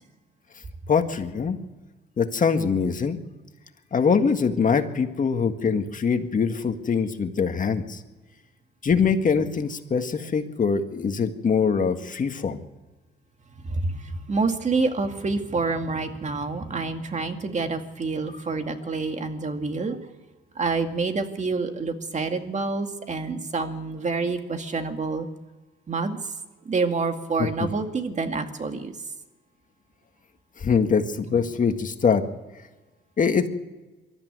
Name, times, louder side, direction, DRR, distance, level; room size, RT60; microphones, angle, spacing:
voice 1, 0.9-1.6 2.2-3.2 3.9-8.0 8.8-12.6 27.4-27.7 30.6-32.2 33.2-33.5, left 6 dB, 40° left, 7 dB, 1.8 m, -23 dB
voice 2, 14.3-20.0 20.6-25.3 25.9-26.2 26.7-28.9, right 4 dB, 35° right, 6 dB, 2.3 m, -27 dB
23.0 x 13.5 x 9.5 m, 1.2 s
cardioid pair, 90°, 20 cm